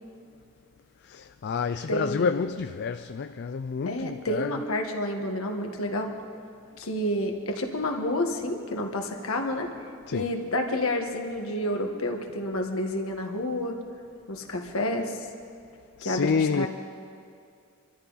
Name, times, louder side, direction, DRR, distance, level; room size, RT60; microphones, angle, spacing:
voice 1, 1.0-4.6 10.1-10.3 16.0-16.7, left 5 dB, 50° left, 0.4 m, -29 dB
voice 2, 1.9-2.5 3.9-6.1 6.8-9.7 10.1-13.7 14.3-15.3 16.0-16.7, left 1 dB, 65° left, 1.6 m, -29 dB
26.0 x 13.5 x 4.1 m
head